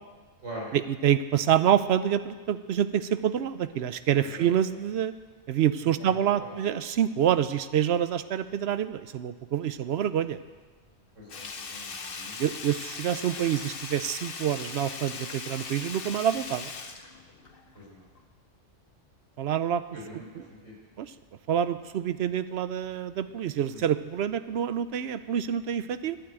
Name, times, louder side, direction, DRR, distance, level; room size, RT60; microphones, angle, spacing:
voice 1, 0.7-5.1 5.5-10.4 12.4-16.7 19.4-19.8 21.0-21.1 21.5-26.2, right 10 dB, 65° right, 13 dB, 0.8 m, -27 dB
voice 2, 5.8-6.6 11.2-12.5 17.7-18.0 19.9-20.7 23.5-23.8, equal, 85° right, -4 dB, 4.2 m, -43 dB
Sink (filling or washing), 11.3-17.8 18.2-18.3, left 4 dB, 50° left, 1.1 m, -39 dB
11.5 x 9.0 x 8.8 m, 1.4 s
omnidirectional pair, 1.3 m